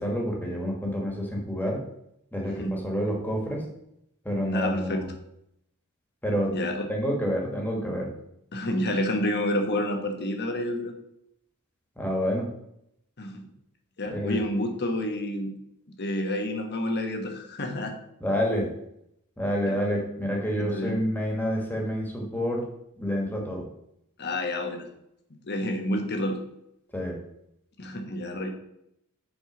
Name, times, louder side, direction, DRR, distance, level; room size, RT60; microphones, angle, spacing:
voice 1, 0.0-1.8 2.3-3.7 4.3-5.1 6.2-6.6 6.9-8.1 12.0-12.5 14.1-14.4 18.2-18.7 19.4-22.7 23.0-23.6 26.9-27.2, equal, 10° left, 0 dB, 1.6 m, -28 dB
voice 2, 4.5-5.0 6.5-6.9 8.5-10.9 13.2-13.4 14.0-15.5 16.0-17.9 19.7-19.8 20.6-21.0 24.2-24.9 25.5-26.4 27.8-28.5, left 1 dB, 50° left, 5 dB, 1.2 m, -29 dB
7.8 x 4.4 x 6.0 m, 0.78 s
head